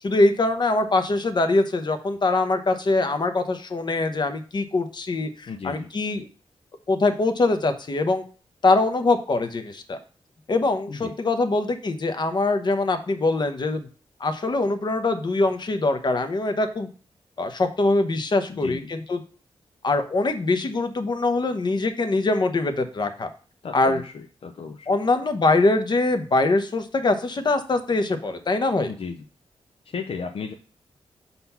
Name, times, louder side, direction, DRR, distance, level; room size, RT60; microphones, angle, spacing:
voice 1, 0.0-6.3 6.9-8.2 8.6-10.0 10.5-13.9 14.2-16.9 17.4-19.2 19.8-23.3 23.7-24.0 24.9-28.9, left 2 dB, 45° left, 8 dB, 0.9 m, -23 dB
voice 2, 5.5-5.9 10.9-11.1 18.5-18.8 23.6-24.9 28.9-29.2 29.9-30.5, left 5 dB, 60° left, 5 dB, 0.6 m, -34 dB
5.7 x 4.2 x 5.6 m, 0.38 s
wide cardioid pair, 90°, 11 cm